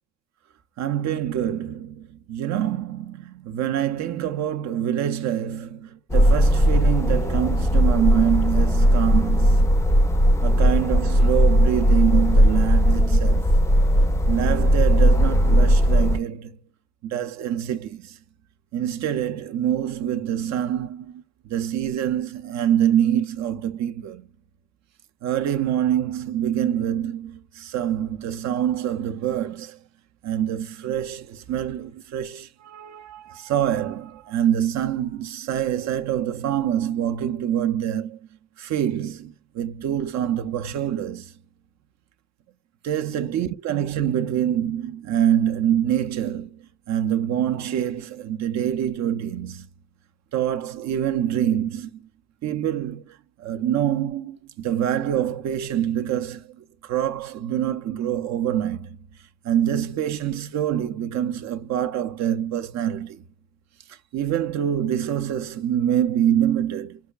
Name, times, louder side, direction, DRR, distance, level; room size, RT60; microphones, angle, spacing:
voice 1, 0.8-9.7 10.4-13.5 14.3-16.6 17.0-18.2 18.7-24.3 25.2-29.8 30.2-38.2 38.6-41.3 42.8-46.6 46.9-49.7 50.3-52.0 52.4-59.0 59.4-63.2 63.9-67.0, right 10 dB, 65° right, 0.4 m, -25 dB
sound 1, 6.1-16.2, equal, 10° left, 0.4 m, -18 dB
5.3 x 2.3 x 2.2 m
cardioid pair, 90°, 30 cm